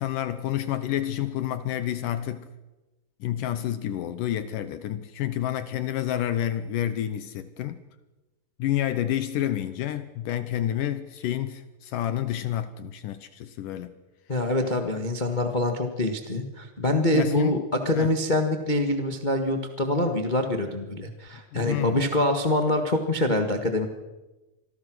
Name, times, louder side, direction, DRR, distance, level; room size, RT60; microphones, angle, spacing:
voice 1, 0.0-2.5 3.2-7.8 8.6-13.9 17.1-17.6 18.0-18.1 21.5-22.0, left 12 dB, 75° left, 2.3 m, -29 dB
voice 2, 14.3-23.9, left 1 dB, 60° left, 0.4 m, -25 dB
27.0 x 20.0 x 6.3 m
omnidirectional pair, 4.1 m